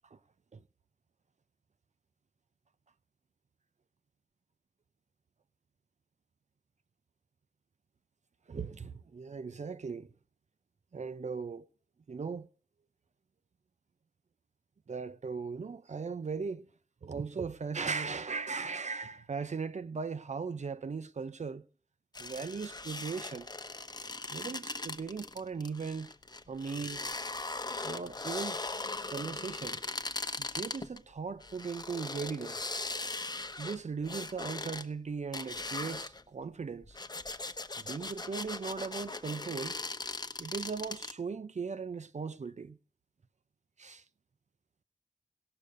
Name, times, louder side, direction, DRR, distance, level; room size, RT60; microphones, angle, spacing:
voice 1, 8.5-10.1 10.9-11.6 12.1-12.5 14.9-16.7 17.0-21.6 22.2-23.5 24.3-26.1 26.5-27.0 27.8-28.6 29.1-29.8 30.4-32.7 33.6-37.0 37.8-39.8 40.4-42.8 43.8-44.0, right 5 dB, 65° right, 0.6 m, -38 dB
sound 1, 22.1-31.0 31.4-34.8 35.3-36.2 36.8-41.1, left 3 dB, 30° left, 1.0 m, -39 dB
18.0 x 6.7 x 5.1 m
wide cardioid pair, 75°, 13 cm